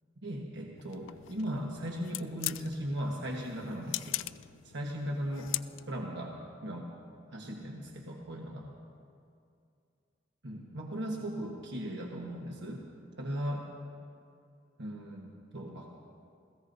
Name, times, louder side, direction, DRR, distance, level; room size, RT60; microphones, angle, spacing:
voice 1, 0.2-4.2 4.7-5.5 5.9-6.4 6.6-6.9 7.3-8.7 10.4-12.9 13.2-13.7 14.8-16.0, equal, 65° right, -1 dB, 1.3 m, -37 dB
sound 1, 0.8-6.1, left 17 dB, 75° left, 0.3 m, -41 dB
28.0 x 16.0 x 2.7 m, 2.4 s
head